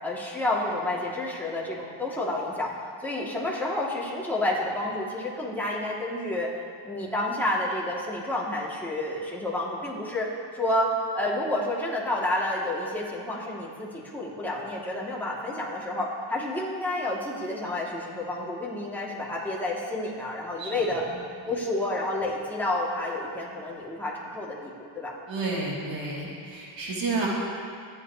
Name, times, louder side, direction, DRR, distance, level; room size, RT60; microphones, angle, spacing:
voice 1, 0.0-2.7 3.0-6.5 6.8-21.0 21.5-25.1, left 1 dB, 5° left, -6 dB, 3.1 m, -30 dB
voice 2, 25.3-27.3, right 3 dB, 70° right, -6 dB, 3.8 m, -30 dB
26.0 x 9.5 x 3.4 m, 2.3 s
cardioid pair, 105°, 46 cm